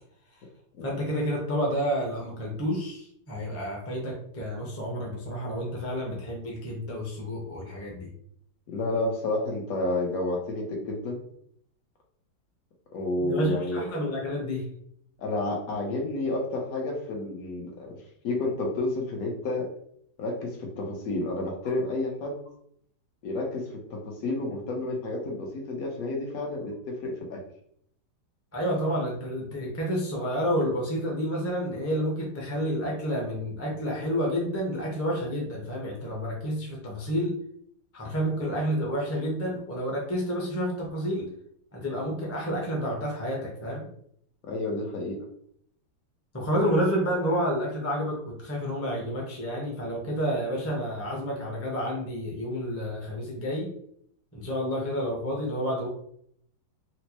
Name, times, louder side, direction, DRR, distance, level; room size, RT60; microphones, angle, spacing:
voice 1, 0.8-8.1 13.2-14.6 28.5-37.4 37.9-41.3 41.7-43.8 46.3-53.7 54.3-55.9, equal, 15° left, -2 dB, 0.5 m, -29 dB
voice 2, 8.7-11.2 12.9-13.8 15.2-18.0 18.2-19.7 20.2-22.3 23.2-27.4 44.4-45.2, left 2 dB, 60° left, 1 dB, 1.2 m, -30 dB
4.3 x 2.0 x 2.9 m, 0.67 s
omnidirectional pair, 1.9 m